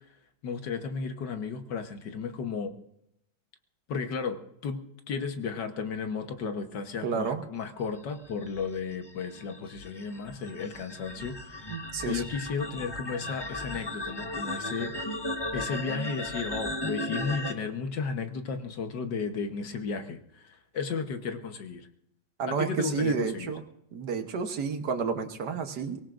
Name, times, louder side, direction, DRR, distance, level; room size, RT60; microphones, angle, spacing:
voice 1, 0.4-2.7 3.9-4.8 5.1-11.7 12.0-14.9 15.5-21.9 22.5-23.5, left 5 dB, 65° left, 6 dB, 1.7 m, -34 dB
voice 2, 7.0-7.4 11.7-12.2 22.4-23.6 23.9-26.0, right 5 dB, 60° right, 6 dB, 1.6 m, -30 dB
sound 1, 8.2-17.5, left 1 dB, 15° left, 0.9 m, -36 dB
24.0 x 19.0 x 2.5 m, 0.76 s
omnidirectional pair, 2.1 m